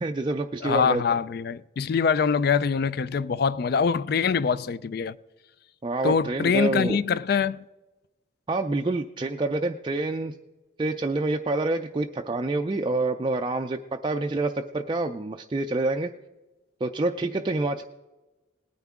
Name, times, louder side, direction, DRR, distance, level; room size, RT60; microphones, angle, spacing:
voice 1, 0.0-1.2 5.8-7.0 8.5-10.3 10.8-16.1 16.8-17.8, right 2 dB, 25° right, 0.4 m, -27 dB
voice 2, 0.6-5.2 6.0-7.6, left 6 dB, 50° left, 0.4 m, -24 dB
19.5 x 9.4 x 3.6 m
head